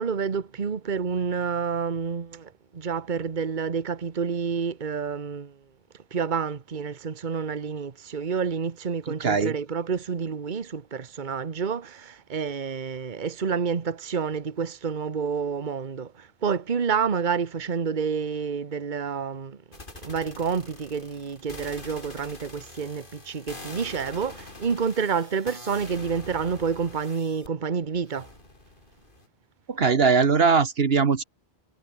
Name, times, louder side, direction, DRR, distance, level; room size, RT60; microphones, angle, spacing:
voice 1, 0.0-5.5 6.1-19.6 20.0-28.3, right 6 dB, 50° right, 1.3 m, -29 dB
voice 2, 9.1-9.5 29.7-31.2, right 5 dB, 65° right, 1.5 m, -21 dB
sound 1, 19.7-27.5 28.1-29.3, left 2 dB, 50° left, 4.0 m, -44 dB
omnidirectional pair, 1.1 m